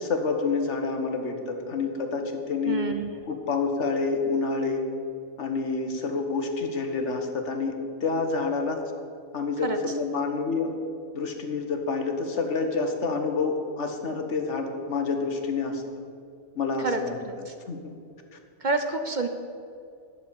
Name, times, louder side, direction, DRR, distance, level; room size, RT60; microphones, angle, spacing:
voice 1, 0.0-2.8 3.3-4.8 5.4-8.8 9.3-10.7 11.1-16.0 16.6-17.2 17.7-17.9 18.3-18.4, left 4 dB, 75° left, 4 dB, 1.6 m, -28 dB
voice 2, 2.6-3.1 9.6-9.8 16.8-17.5 18.6-19.3, right 3 dB, 45° right, 6 dB, 0.8 m, -28 dB
11.5 x 6.9 x 8.5 m, 2.4 s
omnidirectional pair, 1.2 m